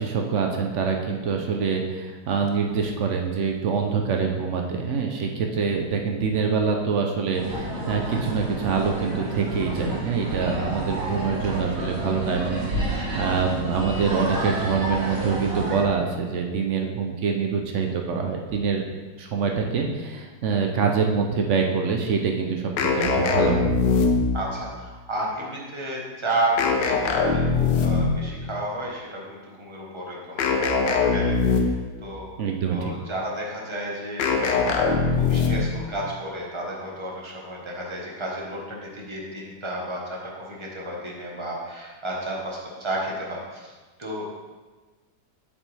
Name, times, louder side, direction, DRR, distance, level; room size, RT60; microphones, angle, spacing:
voice 1, 0.0-18.8 19.2-23.7 32.4-32.9, right 5 dB, 70° right, 2 dB, 0.6 m, -25 dB
sound 1, 7.3-15.8, right 1 dB, 50° right, 1.8 m, -30 dB
sound 2, 22.8-24.5 26.6-28.2 30.4-31.9 34.2-35.8, left 4 dB, 75° left, 1.4 m, -22 dB
voice 2, 24.3-30.5 31.1-32.3 32.7-43.7 44.0-44.3, right 1 dB, 20° right, -3 dB, 0.9 m, -32 dB
8.3 x 5.3 x 3.3 m, 1.3 s
omnidirectional pair, 2.0 m